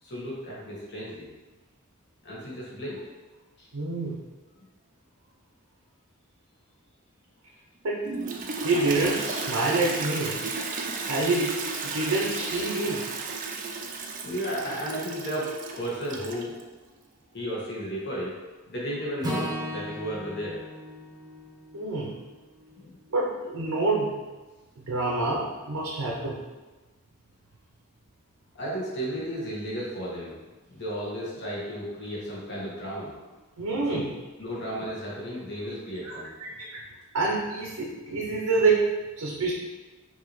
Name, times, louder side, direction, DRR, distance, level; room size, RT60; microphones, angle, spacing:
voice 1, 0.0-1.3 2.2-3.0 3.6-3.7 14.2-16.5 17.3-18.3 18.7-20.6 22.8-23.0 28.5-30.4 30.7-33.3 33.9-34.0 34.4-36.3, equal, 55° left, -6 dB, 1.4 m, -34 dB
voice 2, 3.7-4.2 7.8-8.0 8.6-10.4 11.1-13.0 21.7-22.1 23.1-24.1 24.8-26.4 33.6-34.1 36.0-36.1 36.6-36.8 37.1-38.9 39.2-39.5, right 3 dB, 85° right, -3 dB, 0.7 m, -27 dB
Toilet flush, 8.0-16.6, right 4 dB, 40° right, 0.5 m, -34 dB
Acoustic guitar / Strum, 19.2-23.5, equal, 20° right, 0.8 m, -37 dB
5.5 x 2.8 x 3.2 m, 1.2 s
head